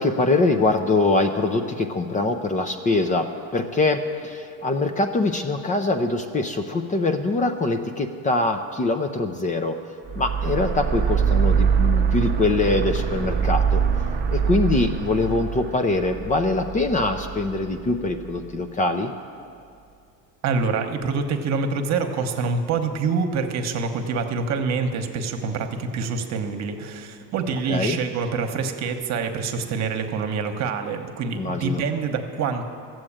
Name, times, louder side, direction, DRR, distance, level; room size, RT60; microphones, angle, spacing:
voice 1, 0.0-3.3 3.5-9.8 10.2-13.8 14.3-19.1 27.5-28.0 31.3-31.8, left 2 dB, 20° left, 6 dB, 0.6 m, -23 dB
sound 1, 10.1-18.4, right 7 dB, 25° right, 0.8 m, -24 dB
voice 2, 20.4-32.7, right 5 dB, 50° right, 6 dB, 1.1 m, -26 dB
13.5 x 7.8 x 8.7 m, 2.3 s
cardioid pair, 140°, 35 cm